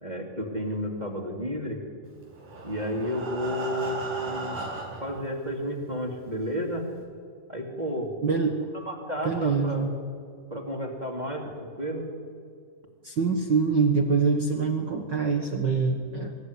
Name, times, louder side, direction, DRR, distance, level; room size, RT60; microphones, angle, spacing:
voice 1, 0.0-1.8 2.6-4.6 5.0-6.8 7.5-8.1 8.7-9.9 10.5-12.1, equal, 15° right, 2 dB, 2.1 m, -32 dB
Breathing, 2.2-5.2 5.9-6.0 6.4-6.5 6.9-7.0, right 3 dB, 85° right, 6.2 m, -36 dB
voice 2, 8.2-8.6 9.2-9.9 13.0-16.4, right 5 dB, 55° right, 4 dB, 1.3 m, -25 dB
24.5 x 14.0 x 9.6 m, 2.2 s
omnidirectional pair, 3.9 m